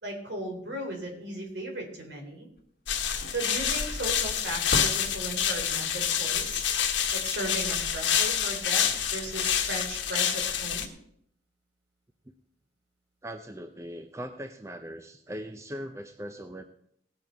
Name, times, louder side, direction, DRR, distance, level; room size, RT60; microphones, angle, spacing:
voice 1, 0.0-2.5 3.3-6.6 7.1-10.9, right 1 dB, 65° right, 1 dB, 3.5 m, -36 dB
sound 1, 2.6-2.7 2.9-6.0, left 1 dB, 50° left, 1.9 m, -38 dB
sound 2, 2.9-10.9, left 8 dB, 80° left, 1.4 m, -28 dB
voice 2, 13.2-16.6, equal, 15° right, 7 dB, 0.6 m, -40 dB
18.0 x 7.3 x 4.6 m, 0.70 s
head